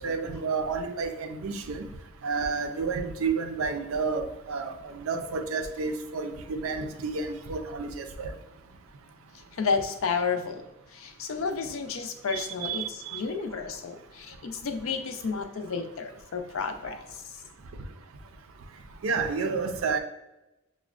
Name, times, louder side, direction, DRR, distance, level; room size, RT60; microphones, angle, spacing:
voice 1, 0.0-1.9 2.2-8.3 12.3-13.2 19.0-20.0, right 4 dB, 80° right, 6 dB, 0.5 m, -30 dB
voice 2, 9.5-10.7 10.9-17.2, left 5 dB, 70° left, 6 dB, 0.5 m, -31 dB
6.0 x 2.1 x 2.4 m, 0.94 s
head